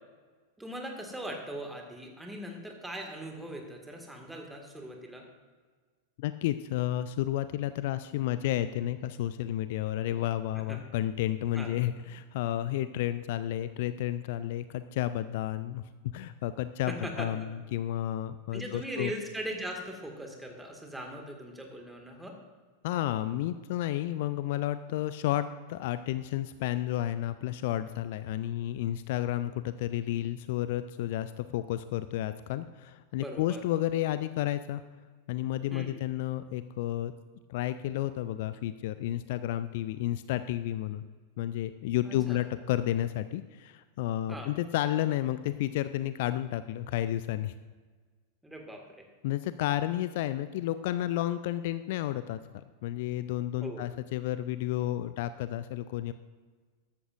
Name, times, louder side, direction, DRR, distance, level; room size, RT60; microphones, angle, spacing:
voice 1, 0.6-5.3 10.7-10.8 11.5-11.7 16.9-17.5 18.5-22.4 33.2-33.6 35.7-36.0 42.1-42.4 44.3-44.5 48.4-49.1 53.6-53.8, right 1 dB, 5° right, 2 dB, 2.0 m, -40 dB
voice 2, 6.2-19.1 22.8-34.8 35.3-37.1 37.5-41.0 41.4-47.5 49.2-52.4 52.8-56.1, left 13 dB, 50° left, 13 dB, 0.4 m, -31 dB
14.0 x 13.0 x 2.6 m, 1.5 s
figure-of-eight pair, 90°, 0 cm